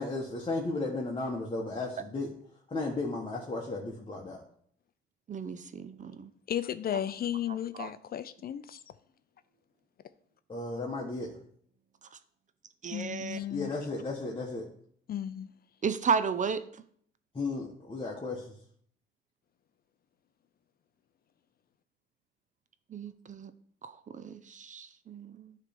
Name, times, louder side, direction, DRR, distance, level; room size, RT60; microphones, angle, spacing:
voice 1, 0.0-2.3 2.7-4.4 10.5-11.3 13.5-14.6 17.3-18.6, left 3 dB, 25° left, 1.4 m, -34 dB
voice 2, 5.3-6.3 7.8-7.9 12.1-12.2 12.8-13.4 15.8-16.6 22.9-23.5 23.8-25.6, right 6 dB, 40° right, 0.5 m, -33 dB
voice 3, 6.5-8.8 12.9-13.7 15.1-15.5, left 10 dB, 50° left, 0.4 m, -34 dB
9.7 x 3.3 x 5.2 m
cardioid pair, 90°, 20 cm